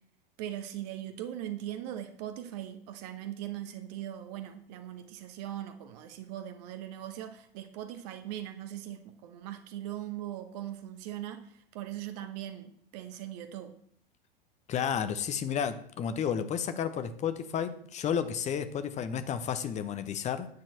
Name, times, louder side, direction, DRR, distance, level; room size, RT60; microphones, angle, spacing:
voice 1, 0.4-13.7, right 12 dB, 45° right, 8 dB, 1.2 m, -40 dB
voice 2, 14.7-20.5, left 8 dB, 25° left, 10 dB, 0.9 m, -32 dB
9.5 x 4.5 x 7.2 m, 0.64 s
figure-of-eight pair, 90°, 29 cm